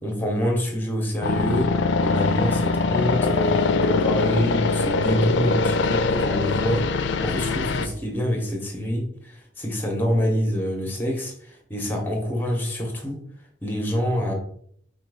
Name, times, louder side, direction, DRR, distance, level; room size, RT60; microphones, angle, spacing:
voice 1, 0.0-1.7 2.0-6.8 7.2-11.3 11.7-13.2 13.6-14.3, equal, 10° left, 2 dB, 0.8 m, -26 dB
sound 1, 1.2-7.9, left 4 dB, 65° left, 0.4 m, -23 dB
4.3 x 2.2 x 4.7 m, 0.68 s
head